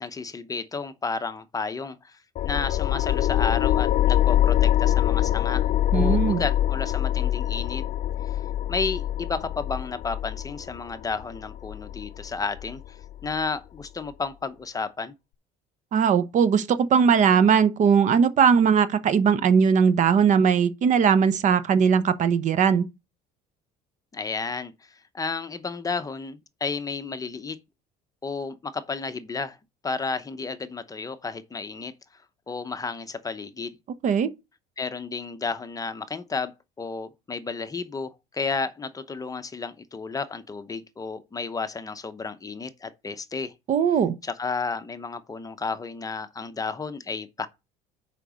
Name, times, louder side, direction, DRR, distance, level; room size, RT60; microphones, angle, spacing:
voice 1, 0.0-5.7 5.9-7.8 8.2-8.4 8.7-13.0 13.2-15.1 24.1-27.6 28.2-29.6 29.8-31.9 32.5-33.8 34.8-43.5 44.2-47.5, left 4 dB, 20° left, 0.8 m, -32 dB
sound 1, 2.4-13.4, left 12 dB, 50° left, 0.4 m, -24 dB
voice 2, 5.9-6.4 15.9-22.9 34.0-34.3 43.7-44.1, right 7 dB, 50° right, 0.9 m, -19 dB
6.5 x 5.1 x 6.3 m
cardioid pair, 105°, 17 cm